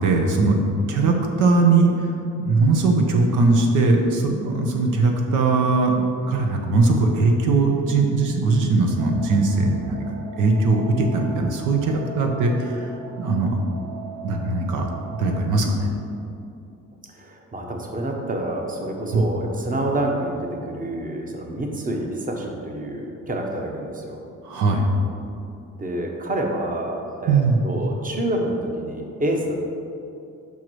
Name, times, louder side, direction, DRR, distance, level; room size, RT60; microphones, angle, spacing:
voice 1, 0.0-2.1 2.4-12.9 13.2-13.6 14.2-14.9 15.2-15.9 19.1-19.2 24.4-24.9 27.3-27.8, right 3 dB, 90° right, 2 dB, 0.9 m, -20 dB
sound 1, 9.0-15.5, right 3 dB, 60° right, 0.7 m, -40 dB
voice 2, 17.1-24.2 25.7-29.7, right 1 dB, 25° right, 1 dB, 1.0 m, -28 dB
5.5 x 4.6 x 6.1 m, 2.6 s
cardioid pair, 90°, 30 cm